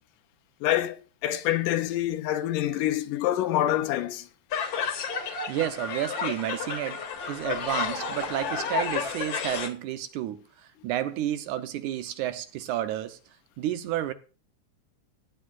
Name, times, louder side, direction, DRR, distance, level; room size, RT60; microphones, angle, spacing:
voice 1, 0.6-4.3, left 13 dB, 90° left, 2.4 m, -26 dB
sound 1, 4.5-9.7, left 6 dB, 55° left, 2.1 m, -31 dB
voice 2, 5.2-7.0 7.3-10.4 10.8-13.2 13.6-14.1, right 12 dB, 80° right, 2.2 m, -31 dB
15.5 x 9.2 x 2.5 m
omnidirectional pair, 3.7 m